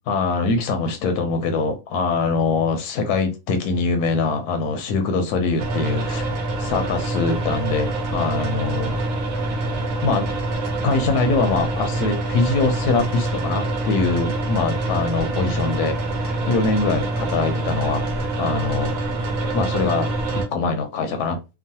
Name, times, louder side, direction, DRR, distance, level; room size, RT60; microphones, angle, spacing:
voice 1, 0.1-6.2 6.6-9.0 10.0-10.3 10.8-16.0 16.2-18.1 18.4-19.0 19.5-20.1 20.5-21.4, left 4 dB, 85° left, 5 dB, 1.1 m, -23 dB
sound 1, 5.6-20.5, right 2 dB, 70° right, 1.1 m, -25 dB
3.0 x 2.0 x 2.7 m, 0.27 s
omnidirectional pair, 1.6 m